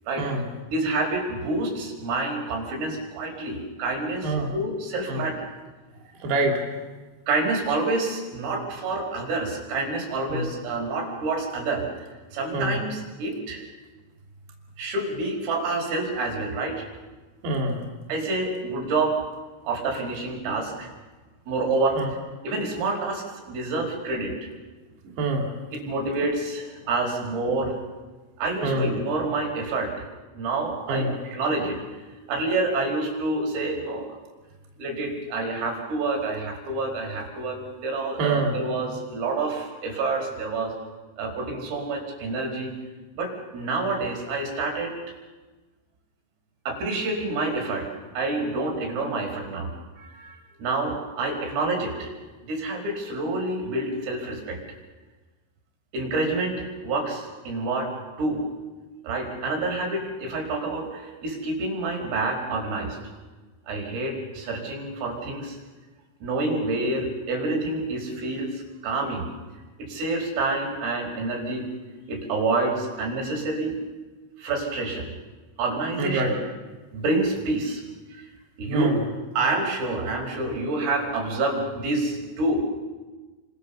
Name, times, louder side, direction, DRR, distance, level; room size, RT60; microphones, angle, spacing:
voice 1, 0.7-5.5 7.3-11.9 12.3-13.7 14.8-16.8 18.1-19.2 19.6-20.9 21.5-22.0 22.4-24.5 25.7-27.8 28.4-29.9 30.4-31.8 32.3-34.2 34.8-40.7 41.2-42.7 43.2-44.9 46.7-47.9 48.2-49.7 50.0-52.1 52.4-54.6 55.9-57.9 58.2-58.5 59.0-63.0 63.7-65.6 66.2-69.3 69.8-71.7 72.1-73.8 74.4-75.1 75.6-76.4 76.9-77.8 78.1-78.3 78.6-78.9 79.4-82.6, right 2 dB, 85° right, 1 dB, 7.4 m, -28 dB
voice 2, 6.2-6.7 10.3-10.4 12.5-12.8 17.4-17.8 22.0-22.1 25.0-25.5 28.6-28.9 30.9-31.1 38.2-38.6 76.0-76.3 78.7-79.0, right 2 dB, 60° right, 1 dB, 4.8 m, -25 dB
29.5 x 25.0 x 7.0 m, 1.3 s
omnidirectional pair, 5.7 m